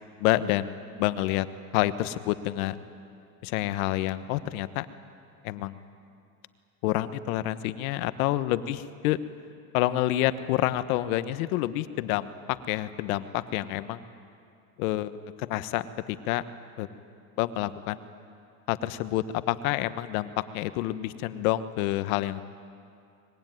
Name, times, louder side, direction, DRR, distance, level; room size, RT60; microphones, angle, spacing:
voice 1, 0.2-1.5 1.7-2.8 3.4-4.9 5.4-5.8 6.8-9.2 9.7-14.0 14.8-15.1 15.4-16.4 16.8-16.9 17.4-18.0 18.7-22.4, left 15 dB, 70° left, 12 dB, 1.3 m, -28 dB
24.0 x 21.5 x 9.4 m, 2.5 s
supercardioid pair, 125°, 44 cm